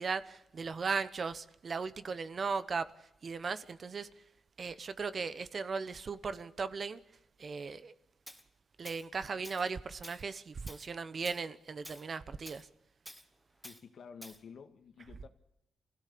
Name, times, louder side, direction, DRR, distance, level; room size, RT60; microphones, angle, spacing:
voice 1, 0.0-2.9 3.2-4.1 4.6-7.0 7.4-7.9 8.8-12.7, right 5 dB, 40° right, 1.0 m, -37 dB
Tools, 8.3-8.4 8.9-9.1 9.4-9.7 10.0-10.2 10.7-10.9 11.2-11.5 11.8-12.1 12.5-12.6 13.1-13.3 13.6-13.8 14.2-14.4, equal, ahead, 1.5 m, -50 dB
voice 2, 13.6-15.3, left 6 dB, 60° left, 2.0 m, -51 dB
26.5 x 16.5 x 8.6 m
wide cardioid pair, 140°, 0 cm